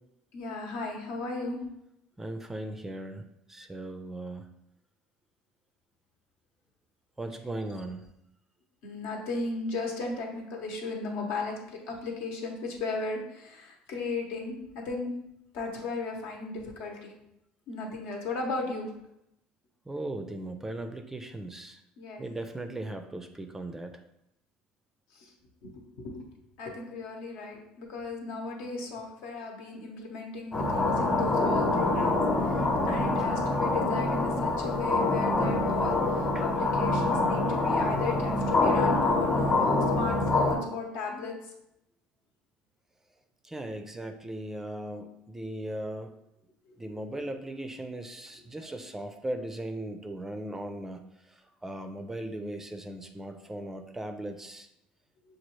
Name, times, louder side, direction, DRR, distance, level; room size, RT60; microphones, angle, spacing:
voice 1, 0.3-1.6 8.8-15.1 15.5-17.1 17.7-18.9 22.0-22.2 25.1-25.3 25.6-25.7 26.0-26.2 26.6-32.2 32.5-41.3 46.7-46.8 47.1-47.2 48.5-48.7, left 3 dB, 75° left, 0 dB, 1.0 m, -36 dB
voice 2, 2.2-4.5 7.2-8.0 19.9-21.8 22.2-23.9 36.3-36.4 43.4-46.1 46.8-51.0 51.6-54.7, right 1 dB, 10° right, 7 dB, 0.4 m, -38 dB
sound 1, 30.5-40.6, left 2 dB, 30° left, 1.0 m, -25 dB
6.1 x 2.4 x 3.1 m, 0.82 s
supercardioid pair, 105°, 3 cm